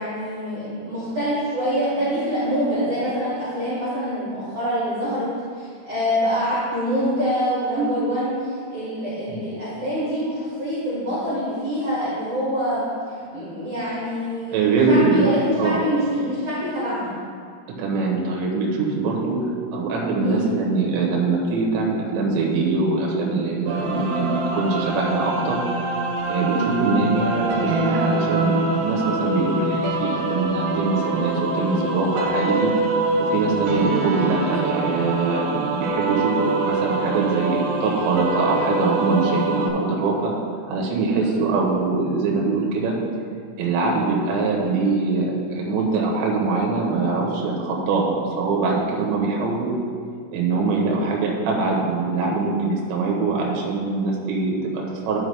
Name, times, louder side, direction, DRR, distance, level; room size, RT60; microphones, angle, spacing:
voice 1, 0.0-5.3 5.6-12.8 13.3-17.1 20.2-20.5 23.9-24.2 26.5-26.7 33.6-33.9 41.1-41.3, equal, 40° right, -11 dB, 2.5 m, -25 dB
voice 2, 14.5-15.3 15.6-15.8 17.8-19.4 19.7-25.6 26.2-32.7 33.2-40.3 40.7-42.9 43.6-49.7 50.3-55.2, right 3 dB, 70° right, -2 dB, 3.2 m, -23 dB
sound 1, 23.7-39.7, right 2 dB, 85° right, 3.7 m, -25 dB
12.5 x 5.9 x 3.3 m, 2.2 s
omnidirectional pair, 5.8 m